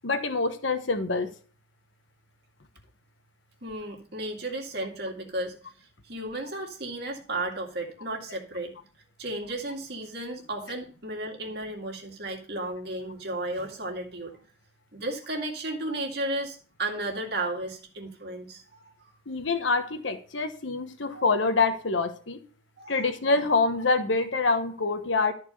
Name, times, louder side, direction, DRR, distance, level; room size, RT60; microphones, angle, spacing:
voice 1, 0.0-1.3 19.3-22.4 22.9-25.3, left 3 dB, 80° left, 8 dB, 1.2 m, -26 dB
voice 2, 3.6-8.7 9.2-14.4 14.9-18.9 21.1-21.3 22.8-23.1, right 1 dB, 55° right, 0 dB, 2.2 m, -34 dB
13.5 x 4.5 x 5.4 m, 0.41 s
head